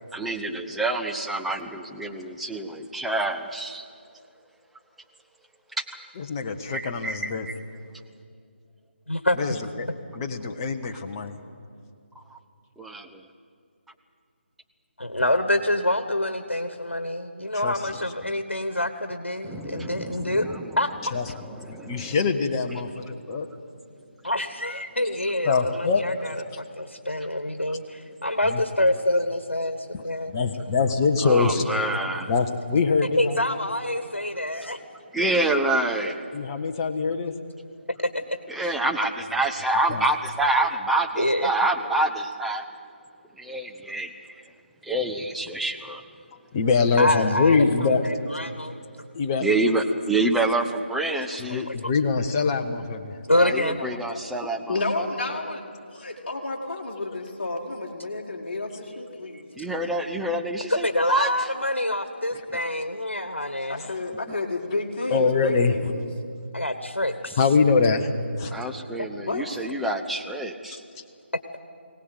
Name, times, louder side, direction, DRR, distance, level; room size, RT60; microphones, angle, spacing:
voice 1, 0.1-3.8 5.8-5.9 6.7-7.5 12.8-13.2 19.4-20.7 21.3-22.2 31.2-32.3 35.1-36.2 38.5-42.6 43.4-44.1 44.8-46.0 49.4-51.6 53.3-54.8 59.6-61.3 68.5-70.8, right 2 dB, ahead, 2 dB, 0.6 m, -27 dB
voice 2, 6.2-7.5 9.4-9.9 10.1-11.4 15.2-15.3 17.5-18.0 21.1-21.4 21.9-23.5 25.4-26.0 28.4-28.6 29.9-30.0 30.3-31.6 32.3-33.5 36.3-37.3 39.9-40.0 46.5-48.1 49.1-49.5 51.4-53.2 62.5-62.6 65.1-65.9 67.4-68.1 68.4-68.6, left 4 dB, 20° left, 5 dB, 1.1 m, -24 dB
voice 3, 15.0-20.5 20.8-20.9 24.2-29.8 30.0-30.3 30.6-30.7 33.2-34.8 35.2-35.3 38.3-38.4 38.6-38.7 41.2-41.5 47.0-48.7 51.1-51.2 51.7-51.8 53.3-53.8 60.7-63.9 66.5-67.4 69.0-69.1, left 1 dB, 75° left, 8 dB, 1.4 m, -26 dB
voice 4, 54.7-59.5 63.7-66.0 69.2-69.7, left 2 dB, 40° left, -4 dB, 2.3 m, -31 dB
23.0 x 18.0 x 8.0 m, 2.4 s
figure-of-eight pair, 150°, 6 cm